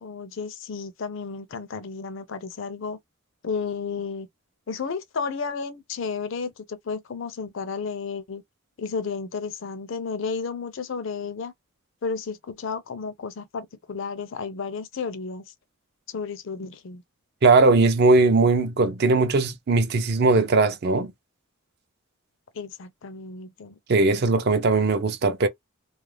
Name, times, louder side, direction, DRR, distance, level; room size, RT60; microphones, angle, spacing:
voice 1, 0.0-3.0 3.4-4.3 4.7-8.4 8.8-11.5 12.0-15.4 16.1-17.0 22.5-23.8, left 5 dB, 60° left, 0.4 m, -32 dB
voice 2, 17.4-21.1 23.9-25.5, right 3 dB, 50° right, 0.5 m, -19 dB
2.4 x 2.0 x 3.1 m
head